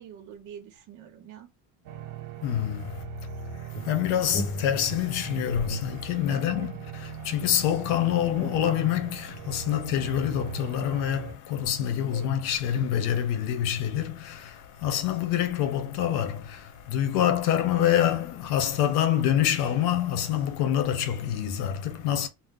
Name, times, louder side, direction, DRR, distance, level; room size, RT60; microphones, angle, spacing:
voice 1, 0.0-1.5 6.3-6.7 12.1-12.3, right 9 dB, 50° right, 0.8 m, -44 dB
sound 1, 1.8-11.3, right 6 dB, 90° right, 1.0 m, -40 dB
voice 2, 2.4-3.0 3.5-22.3, left 10 dB, 85° left, 0.8 m, -26 dB
sound 2, 3.7-5.2 5.7-7.1 7.4-9.9, left 2 dB, 30° left, 0.9 m, -39 dB
2.8 x 2.1 x 3.6 m
cardioid pair, 155°, 39 cm